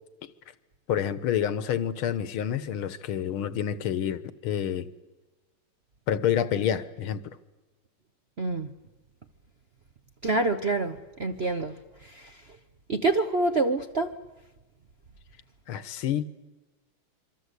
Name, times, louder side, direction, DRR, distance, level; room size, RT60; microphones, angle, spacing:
voice 1, 0.9-4.9 6.1-7.4 15.7-16.2, left 9 dB, 75° left, 1.9 m, -28 dB
voice 2, 8.4-8.7 10.2-11.7 12.0-12.4 12.9-14.1, right 3 dB, 45° right, 0.8 m, -26 dB
26.0 x 24.5 x 8.2 m
omnidirectional pair, 2.4 m